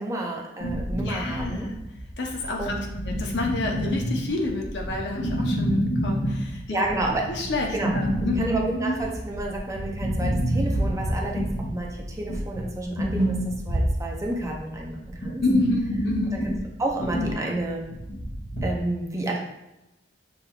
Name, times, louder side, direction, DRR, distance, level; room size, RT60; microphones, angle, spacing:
voice 1, 0.0-1.7 2.6-2.8 6.7-7.2 7.7-7.9 8.4-13.4 13.6-15.4 16.3-16.5 16.8-17.8 18.6-19.4, right 2 dB, 15° right, -1 dB, 0.6 m, -30 dB
sound 1, 0.6-18.8, equal, 40° left, 1.4 m, -28 dB
voice 2, 1.0-1.8 2.2-2.7 3.1-6.6 7.3-8.5 15.4-16.4, left 3 dB, 65° left, 0 dB, 0.8 m, -29 dB
6.4 x 3.1 x 2.4 m, 0.94 s
head